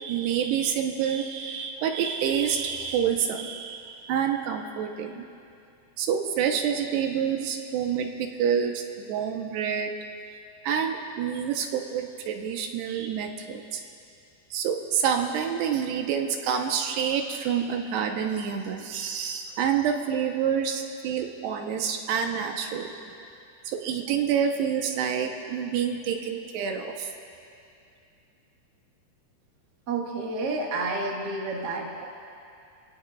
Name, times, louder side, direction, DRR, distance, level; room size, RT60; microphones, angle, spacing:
voice 1, 0.0-5.2 6.0-9.9 10.6-13.8 14.5-22.9 23.7-27.1, right 8 dB, 85° right, 3 dB, 3.1 m, -28 dB
voice 2, 29.9-32.0, right 3 dB, 50° right, -2 dB, 1.2 m, -30 dB
28.0 x 17.5 x 2.5 m, 2.5 s
omnidirectional pair, 4.7 m